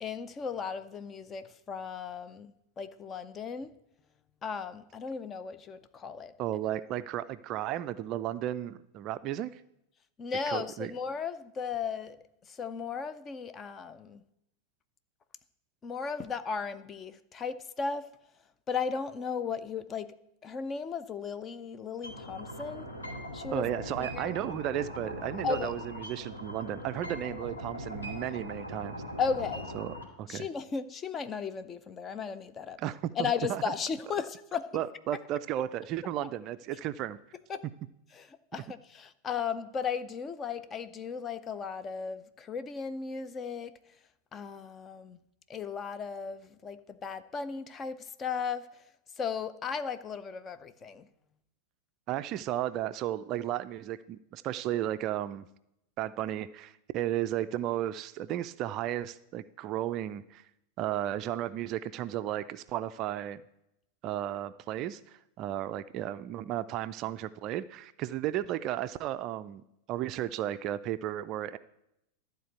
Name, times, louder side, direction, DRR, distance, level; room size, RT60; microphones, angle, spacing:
voice 1, 0.0-3.7 4.4-6.3 10.2-12.2 12.5-14.2 15.8-18.1 18.7-20.1 20.4-22.9 23.3-23.7 24.0-24.4 25.4-25.7 29.2-29.7 30.3-32.8 33.2-34.8 36.2-36.3 37.5-37.7 38.1-43.7 44.3-45.2 45.5-48.7 49.2-51.1, left 6 dB, 25° left, 0.6 m, -36 dB
voice 2, 6.4-9.6 10.5-10.9 23.5-29.0 29.7-30.5 32.8-33.7 34.7-37.2 52.1-55.5 56.0-60.4 60.8-63.4 64.0-71.6, right 12 dB, 35° right, 0.4 m, -34 dB
sound 1, 22.0-30.0, equal, 75° left, 2.0 m, -40 dB
12.0 x 4.0 x 8.0 m
figure-of-eight pair, 90°, 0 cm